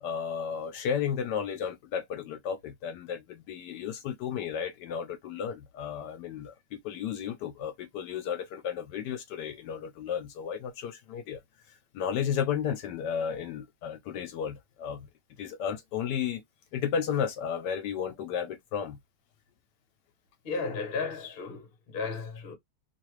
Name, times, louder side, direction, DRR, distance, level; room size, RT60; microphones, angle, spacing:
voice 1, 0.0-11.4 11.7-15.1 15.4-16.4 16.7-19.0, left 8 dB, 75° left, 1.1 m, -33 dB
voice 2, 20.4-22.6, left 4 dB, 45° left, 0.8 m, -34 dB
2.9 x 2.3 x 3.0 m
omnidirectional pair, 1.9 m